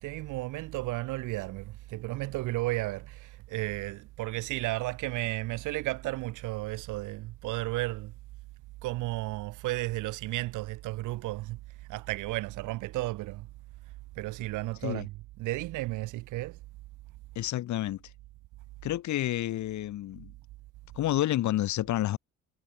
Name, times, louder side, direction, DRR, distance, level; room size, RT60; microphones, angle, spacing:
voice 1, 0.0-8.1 8.8-11.6 11.9-13.5 14.2-16.6, right 18 dB, 90° right, 0.7 m, -33 dB
voice 2, 17.3-18.0 18.8-20.3 20.9-22.2, left 13 dB, 70° left, 0.9 m, -29 dB
cardioid pair, 90°, 30 cm